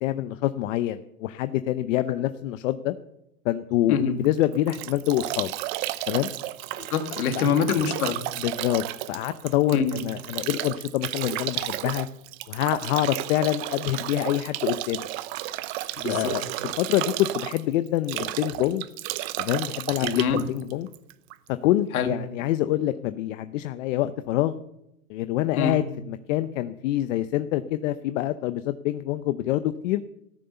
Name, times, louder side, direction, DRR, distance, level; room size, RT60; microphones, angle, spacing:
voice 1, 0.0-2.9 3.4-5.5 6.1-6.3 7.3-7.5 8.4-12.1 12.5-15.1 16.1-18.8 19.4-20.9 21.6-24.6 25.1-30.0, left 14 dB, 60° left, 11 dB, 0.8 m, -26 dB
Bathtub (filling or washing) / Drip / Trickle dribble, 4.2-21.5, right 16 dB, 45° right, 0.8 m, -33 dB
voice 2, 6.8-8.2 9.7-10.0 16.0-16.3 20.0-20.4 21.9-22.1 25.6-25.8, left 6 dB, 75° left, 6 dB, 2.3 m, -25 dB
14.0 x 10.5 x 6.9 m, 0.83 s
hypercardioid pair, 125°, 44 cm